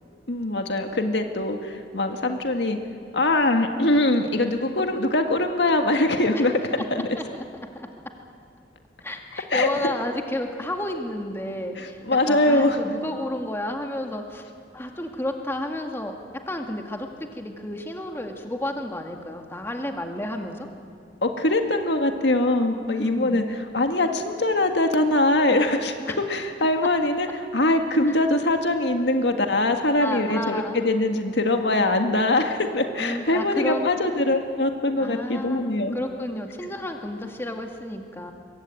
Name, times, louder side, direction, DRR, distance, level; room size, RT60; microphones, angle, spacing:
voice 1, 0.3-2.8 3.1-7.0 9.5-9.7 11.8-12.8 21.2-36.0, left 2 dB, 70° left, 5 dB, 1.9 m, -22 dB
voice 2, 9.0-12.0 12.2-14.5 14.7-16.2 16.5-20.7 23.0-23.5 26.1-26.2 28.1-28.2 30.0-30.8 33.0-34.0 35.0-38.3, left 1 dB, 15° left, 3 dB, 2.0 m, -31 dB
23.5 x 22.0 x 9.1 m, 2.3 s
head